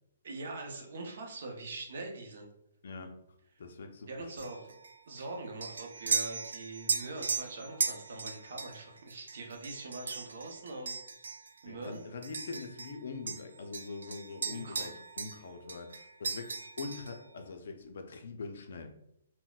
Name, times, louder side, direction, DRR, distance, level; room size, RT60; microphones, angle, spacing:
voice 1, 0.2-2.5 4.0-4.7 5.1-11.0 11.6-12.0 14.4-14.9, right 2 dB, 50° right, 1 dB, 0.6 m, -43 dB
voice 2, 2.8-3.2 3.6-4.1 11.7-18.9, left 4 dB, 55° left, 5 dB, 0.4 m, -43 dB
sound 1, 4.4-13.0 13.3-15.4 15.7-17.2, right 5 dB, 85° right, 0.3 m, -37 dB
3.9 x 2.1 x 2.3 m, 0.78 s
hypercardioid pair, 175°, 0 cm